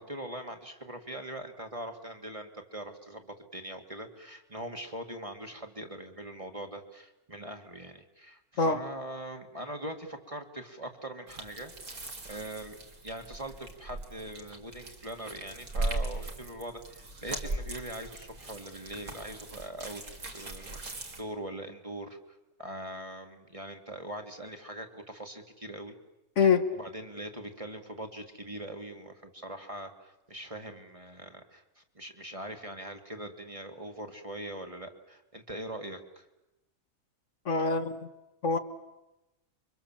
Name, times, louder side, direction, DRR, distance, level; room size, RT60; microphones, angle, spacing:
voice 1, 0.0-11.7 12.3-26.0 26.7-36.3, right 1 dB, 20° right, 5 dB, 2.0 m, -42 dB
sound 1, 11.3-21.2, right 2 dB, 70° right, 3.1 m, -39 dB
voice 2, 26.4-26.7 37.4-38.1 38.4-38.6, left 5 dB, 55° left, 7 dB, 1.7 m, -25 dB
28.5 x 24.0 x 7.4 m, 0.98 s
omnidirectional pair, 1.5 m